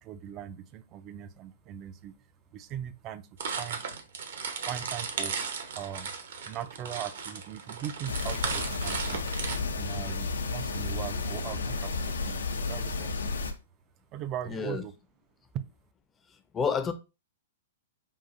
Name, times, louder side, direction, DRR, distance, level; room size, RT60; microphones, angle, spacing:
voice 1, 0.0-2.1 2.5-3.3 3.6-3.8 4.7-5.3 5.7-6.1 6.5-9.2 9.7-13.3 14.1-14.9 15.5-15.6, right 10 dB, 35° right, 0.4 m, -39 dB
sound 1, 3.4-9.6, right 5 dB, 65° right, 0.9 m, -35 dB
sound 2, 8.1-13.5, left 3 dB, 80° left, 0.6 m, -32 dB
voice 2, 14.5-14.8 16.5-16.9, left 6 dB, 20° left, 0.5 m, -29 dB
5.4 x 2.5 x 2.5 m
hypercardioid pair, 120°, 0 cm